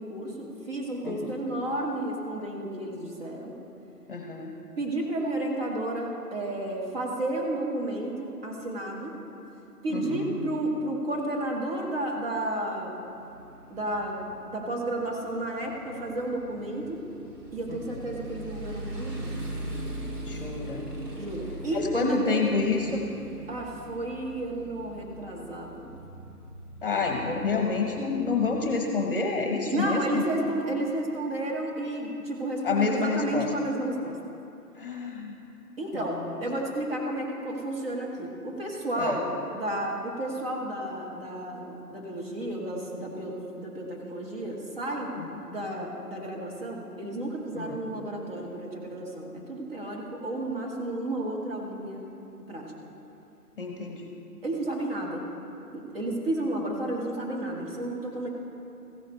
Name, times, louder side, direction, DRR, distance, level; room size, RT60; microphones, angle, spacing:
voice 1, 0.0-3.5 4.8-9.1 9.8-13.0 13.7-14.2 14.5-17.0 17.5-19.3 21.1-22.4 23.5-26.0 29.7-34.2 35.8-45.1 45.4-52.1 52.5-52.7 54.4-55.3 55.7-58.3, right 1 dB, 35° right, -2 dB, 1.8 m, -32 dB
voice 2, 1.0-1.3 4.1-4.5 9.9-10.4 17.7-18.0 20.2-20.9 21.9-23.0 26.8-30.2 32.6-33.5 34.8-35.4 35.9-36.4 39.0-39.2 45.2-45.4 47.5-47.8 53.6-54.1, left 4 dB, 35° left, 2 dB, 1.0 m, -29 dB
Motorcycle, 13.0-28.8, right 1 dB, 80° right, 2.6 m, -41 dB
15.0 x 11.0 x 3.2 m, 2.7 s
figure-of-eight pair, 140°, 47 cm